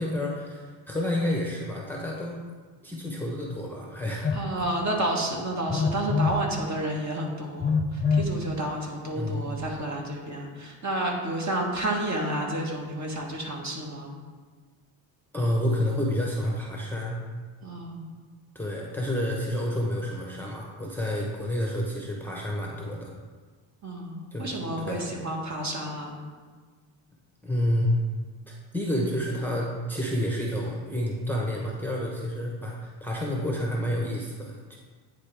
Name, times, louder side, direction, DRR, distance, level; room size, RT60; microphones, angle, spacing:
voice 1, 0.0-2.4 2.8-4.3 9.2-9.5 15.3-17.2 18.5-23.1 24.3-25.1 27.4-28.0 28.5-34.8, left 1 dB, 5° left, -3 dB, 0.9 m, -29 dB
Telephone, 4.2-4.4 5.7-6.4 7.6-8.3, left 5 dB, 25° left, 0.3 m, -24 dB
voice 2, 4.3-14.1 17.6-18.1 23.8-26.1, right 1 dB, 35° right, -1 dB, 1.5 m, -30 dB
9.4 x 3.9 x 3.4 m, 1.4 s
cardioid pair, 90°, 49 cm